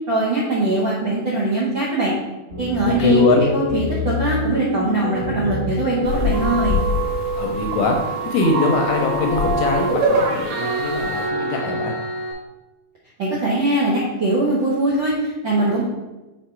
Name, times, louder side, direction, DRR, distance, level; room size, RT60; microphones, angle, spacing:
voice 1, 0.1-2.1 2.6-3.2 3.5-6.8 13.2-15.8, right 2 dB, 65° right, -6 dB, 1.2 m, -21 dB
sound 1, 2.5-10.0, equal, 20° right, 0.9 m, -28 dB
voice 2, 2.8-3.4 7.4-11.9, left 3 dB, 75° left, 1 dB, 1.9 m, -21 dB
sound 2, 6.0-11.3, left 7 dB, 50° right, 2.5 m, -29 dB
sound 3, 6.3-12.3, right 2 dB, 90° right, 2.9 m, -25 dB
6.4 x 4.2 x 4.5 m, 1.1 s
omnidirectional pair, 3.8 m